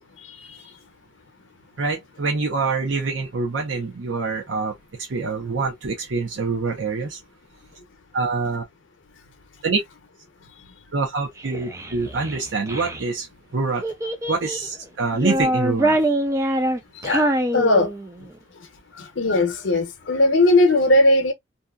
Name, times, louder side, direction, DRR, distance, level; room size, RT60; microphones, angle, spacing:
voice 1, 0.2-0.7 11.5-11.6 16.9-17.9 18.2-18.3 18.6-18.7 18.9-21.3, left 2 dB, 75° left, 0.7 m, -19 dB
voice 2, 1.8-4.7 5.0-7.2 8.1-8.6 9.6-9.8 10.9-13.3 13.5-13.8 14.3-16.0, right 4 dB, 70° right, 0.7 m, -25 dB
Child speech kid speaking, 11.4-13.0 13.8-14.7 15.1-18.3, right 1 dB, 15° right, 0.3 m, -24 dB
2.7 x 2.4 x 2.2 m
head